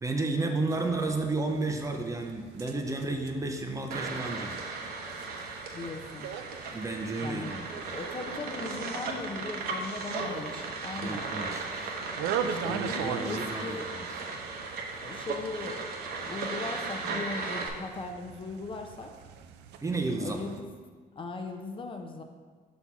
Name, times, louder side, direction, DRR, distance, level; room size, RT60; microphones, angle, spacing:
voice 1, 0.0-4.6 6.7-7.7 11.0-11.7 12.6-14.2 19.8-20.4, right 2 dB, 20° right, 3 dB, 0.5 m, -32 dB
sound 1, 0.7-20.6, right 8 dB, 85° right, 0.4 m, -42 dB
sound 2, 3.9-17.7, right 3 dB, 65° right, 0.9 m, -36 dB
voice 2, 5.7-6.3 7.2-7.5 7.9-11.3 12.4-13.9 15.0-19.1 20.2-20.7 21.2-22.2, left 3 dB, 30° left, 4 dB, 0.6 m, -39 dB
5.6 x 4.2 x 4.7 m, 1.5 s
cardioid pair, 110°, 17 cm